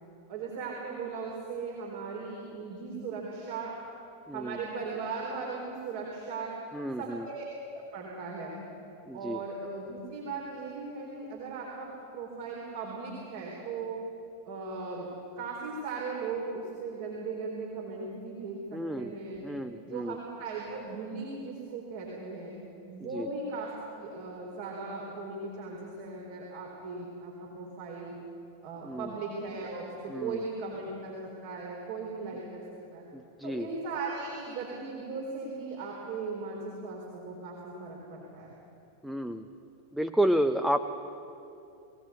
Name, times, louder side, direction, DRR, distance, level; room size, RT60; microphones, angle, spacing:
voice 1, 0.3-3.8 4.3-6.5 7.0-7.5 7.7-8.5 9.1-14.0 14.4-15.1 15.4-19.4 19.9-22.5 22.9-23.7 24.0-28.1 28.6-32.6 32.9-33.0 33.4-38.5, right 4 dB, 50° right, -2 dB, 4.3 m, -38 dB
voice 2, 4.3-4.6 6.7-7.3 9.1-9.4 18.7-19.1 19.4-20.2 23.0-23.3 28.8-29.1 30.1-30.4 33.1-33.7 39.0-39.4 39.9-40.8, right 1 dB, ahead, 7 dB, 0.7 m, -30 dB
21.5 x 17.5 x 8.4 m, 2.8 s
figure-of-eight pair, 90°, 0 cm